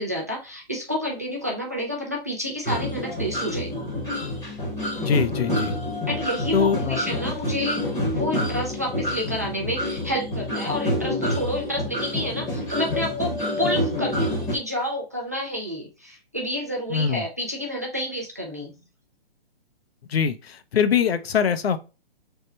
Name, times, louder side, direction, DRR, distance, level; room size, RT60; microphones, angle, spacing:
voice 1, 0.0-3.9 6.1-7.8 8.1-18.7, equal, 15° right, 0.3 m, -29 dB
sound 1, 2.7-14.6, left 1 dB, 10° left, 0.9 m, -27 dB
voice 2, 5.0-5.8 6.5-7.0 16.9-17.3 20.1-21.8, left 7 dB, 85° left, 0.7 m, -23 dB
3.5 x 2.2 x 4.1 m
hypercardioid pair, 165°, 30 cm